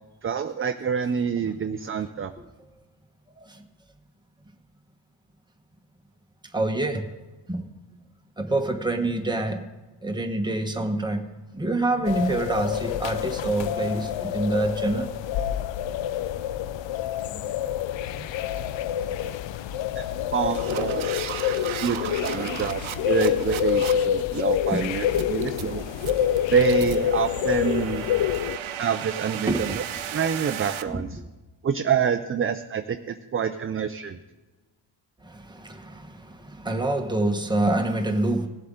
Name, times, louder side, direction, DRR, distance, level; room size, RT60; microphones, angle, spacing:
voice 1, 0.2-2.3 20.0-20.1 20.3-21.1 21.8-25.8 26.5-28.0 28.8-29.8 30.1-31.2 31.6-34.2, right 7 dB, 30° right, 7 dB, 0.4 m, -26 dB
voice 2, 6.5-7.1 7.5-7.7 8.4-9.6 10.0-11.2 11.5-15.1 17.3-17.7 18.1-18.3 24.7-25.1 29.5-29.8 35.2-38.5, right 2 dB, 10° right, 4 dB, 1.1 m, -26 dB
sound 1, 12.0-28.6, left 11 dB, 65° left, 0.5 m, -27 dB
sound 2, 17.1-17.3 17.6-17.9 18.3-18.7 19.2-19.5 20.1-30.8, right 9 dB, 70° right, 0.8 m, -36 dB
18.0 x 7.7 x 3.7 m, 1.2 s
wide cardioid pair, 135°, 49 cm